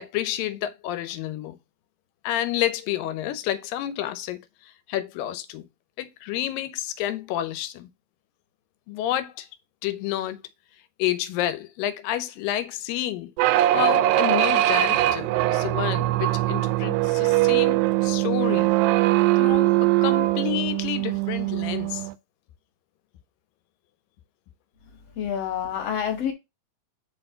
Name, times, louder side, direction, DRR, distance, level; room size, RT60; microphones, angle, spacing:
voice 1, 0.0-1.6 2.2-5.7 6.0-7.9 8.9-9.5 9.8-10.4 11.0-13.3 13.7-18.7 19.4-22.1, left 13 dB, 80° left, 2.4 m, -29 dB
sound 1, 13.4-22.1, right 16 dB, 90° right, 2.3 m, -21 dB
voice 2, 25.2-26.3, left 9 dB, 50° left, 2.3 m, -27 dB
5.2 x 4.5 x 5.5 m
omnidirectional pair, 4.0 m